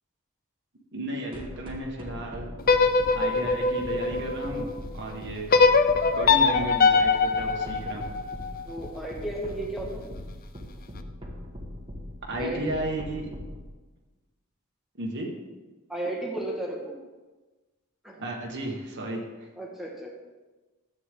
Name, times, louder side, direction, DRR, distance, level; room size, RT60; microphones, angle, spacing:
voice 1, 0.9-2.5 3.1-4.7 4.9-5.5 6.1-8.1 12.3-13.3 15.0-15.3 18.2-19.5, right 1 dB, 55° right, -1 dB, 1.6 m, -33 dB
sound 1, 1.3-13.6, left 1 dB, 25° right, 1.6 m, -39 dB
sound 2, 2.6-4.8 5.5-8.6, left 4 dB, 45° left, 0.6 m, -22 dB
voice 2, 8.7-10.1 12.4-12.8 15.9-16.9 18.0-18.2 19.6-20.1, right 1 dB, ahead, -3 dB, 1.8 m, -34 dB
13.0 x 8.4 x 3.7 m, 1.2 s
head